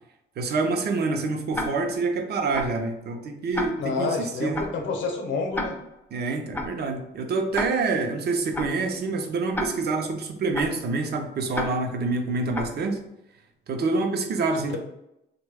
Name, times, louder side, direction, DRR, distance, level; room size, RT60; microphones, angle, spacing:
voice 1, 0.4-4.7 6.1-13.0 13.7-14.8, right 3 dB, 55° right, 4 dB, 0.6 m, -27 dB
Tick-tock, 1.5-2.0 2.5-2.9 3.5-4.0 4.5-4.9 5.5-6.0 6.5-6.9 7.5-8.0 8.5-8.9 9.5-10.0 10.5-10.9 11.5-12.0 12.5-12.9, left 1 dB, 10° left, 0.4 m, -33 dB
voice 2, 3.8-5.8, left 4 dB, 70° left, 3 dB, 0.7 m, -28 dB
3.0 x 2.2 x 3.3 m, 0.84 s
cardioid pair, 90°, 20 cm